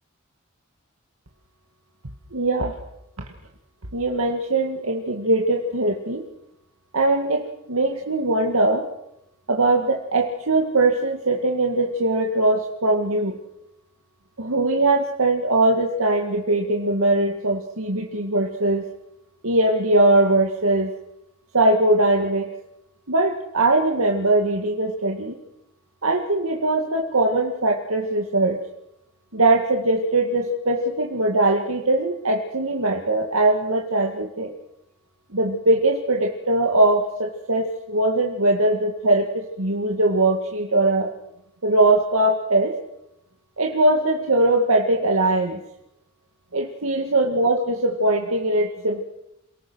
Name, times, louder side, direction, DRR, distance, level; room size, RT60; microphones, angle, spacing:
voice 1, 2.3-2.8 3.2-3.3 3.9-6.2 6.9-8.9 9.5-13.4 14.4-18.9 19.4-20.9 21.5-22.5 23.1-25.3 26.0-28.6 29.3-34.5 35.3-41.1 41.6-42.8 43.6-45.6 46.5-49.0, right 2 dB, 80° right, 2 dB, 2.1 m, -21 dB
28.5 x 19.0 x 6.4 m, 0.85 s
head